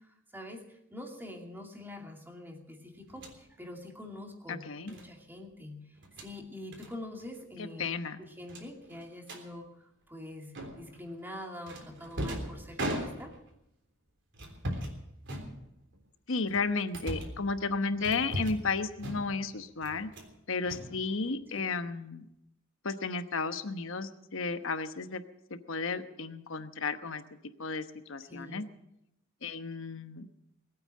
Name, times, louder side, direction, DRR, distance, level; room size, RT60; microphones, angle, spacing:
voice 1, 0.0-5.9 6.2-7.9 8.2-13.4 17.9-18.0 21.5-21.7 28.3-28.7, left 1 dB, 10° right, 2 dB, 2.5 m, -45 dB
sound 1, 3.1-3.4 4.9-5.1 5.9-6.3 6.7-6.9 7.2-7.4 7.7-7.8 8.5-9.4 10.5-11.0 11.7-13.5 14.3-15.0 15.2-16.0 16.5-17.4 18.0-18.7 19.0-19.5 19.8-20.3 20.6-21.5, right 1 dB, 60° right, 3.5 m, -38 dB
voice 2, 4.5-4.9 7.6-8.2 16.3-20.1 20.5-22.3 22.8-25.2 25.5-27.2 27.6-28.6 29.4-30.3, left 4 dB, 65° left, 9 dB, 1.1 m, -33 dB
21.0 x 9.1 x 7.5 m, 0.83 s
head